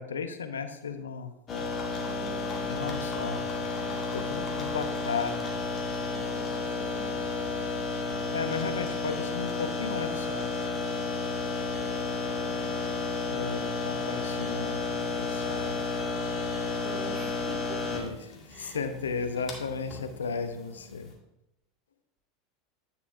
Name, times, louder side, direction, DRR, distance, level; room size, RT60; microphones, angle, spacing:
voice 1, 0.0-1.3 2.6-3.4 4.1-5.5 8.3-10.5 13.3-15.8 17.9-21.1, left 5 dB, 85° left, 9 dB, 0.6 m, -35 dB
sound 1, 1.5-21.1, left 3 dB, 35° left, 2.0 m, -32 dB
voice 2, 2.0-2.8 3.8-4.4 6.0-7.6 11.8-12.2 16.8-17.8 18.5-18.8, right 3 dB, 45° right, 2 dB, 1.8 m, -46 dB
9.6 x 7.0 x 2.6 m, 0.90 s
hypercardioid pair, 80°, 0 cm